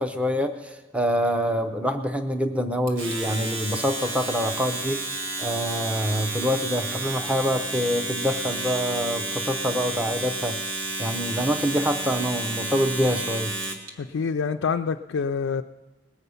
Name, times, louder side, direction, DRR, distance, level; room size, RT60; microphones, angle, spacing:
voice 1, 0.0-5.0 5.4-10.6 11.0-13.5, equal, 5° right, 0.6 m, -26 dB
Domestic sounds home sounds, 2.9-13.9, right 2 dB, 75° right, 1.7 m, -31 dB
voice 2, 14.0-15.6, left 5 dB, 70° left, 0.4 m, -26 dB
20.0 x 8.0 x 5.6 m
head